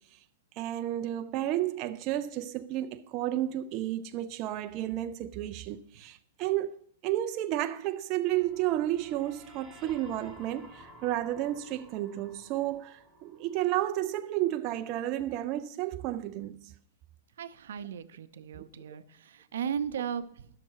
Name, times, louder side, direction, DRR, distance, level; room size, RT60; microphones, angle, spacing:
voice 1, 0.6-6.8 7.0-16.7 18.6-18.7, right 13 dB, 35° right, 0.4 m, -32 dB
sound 1, 8.3-14.2, right 1 dB, ahead, 1.2 m, -53 dB
voice 2, 17.4-20.5, right 8 dB, 75° right, 0.7 m, -36 dB
11.5 x 6.5 x 4.6 m
hypercardioid pair, 150°, 0 cm